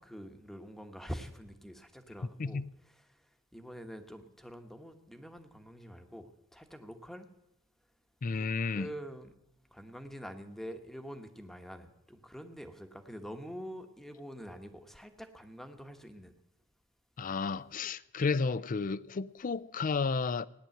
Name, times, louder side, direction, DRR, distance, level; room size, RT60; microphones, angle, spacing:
voice 1, 0.0-7.3 8.3-9.3 9.7-16.3, equal, ahead, 1.1 m, -46 dB
voice 2, 8.2-8.9 17.2-20.5, left 4 dB, 40° left, 0.5 m, -32 dB
16.5 x 10.0 x 7.8 m
head